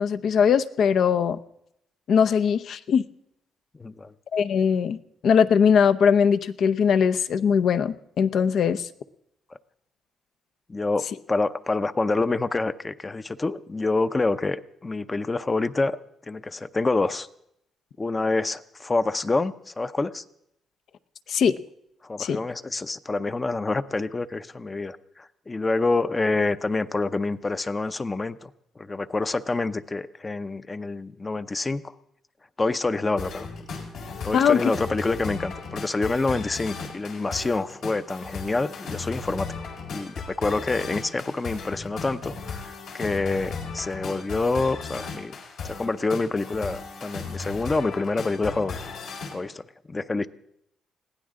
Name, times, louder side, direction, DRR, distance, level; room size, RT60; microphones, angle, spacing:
voice 1, 0.0-1.4 2.1-3.0 4.3-5.0 5.2-8.9 21.3-21.6 22.2-22.4 34.3-34.7, left 7 dB, 65° left, 10 dB, 0.7 m, -20 dB
voice 2, 3.8-4.1 10.7-16.0 16.3-17.3 18.0-20.2 22.0-28.5 28.8-31.8 32.6-33.5 34.2-39.5 39.9-45.3 45.6-48.8 49.3-49.6 49.9-50.3, left 3 dB, 25° left, 12 dB, 0.7 m, -27 dB
sound 1, 33.2-49.3, left 4 dB, 80° left, 4.2 m, -36 dB
21.5 x 16.0 x 3.8 m, 0.77 s
cardioid pair, 90°, 0 cm